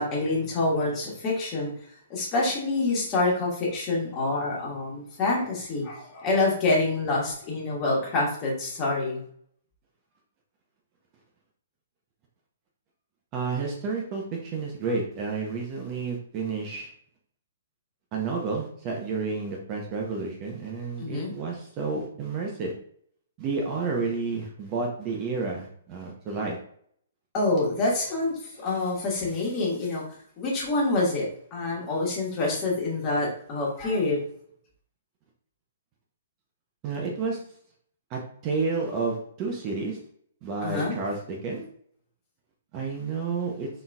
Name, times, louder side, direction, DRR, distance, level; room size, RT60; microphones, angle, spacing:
voice 1, 0.0-1.7 2.1-9.2 21.0-21.3 27.3-30.0 30.4-34.2 40.6-41.0, left 2 dB, 25° left, -4 dB, 1.5 m, -26 dB
voice 2, 13.3-16.9 18.1-22.7 23.4-26.6 36.8-37.4 38.1-40.0 40.4-41.6 42.7-43.7, right 4 dB, 30° right, 0 dB, 0.7 m, -30 dB
4.0 x 3.9 x 2.3 m, 0.62 s
hypercardioid pair, 155°, 0 cm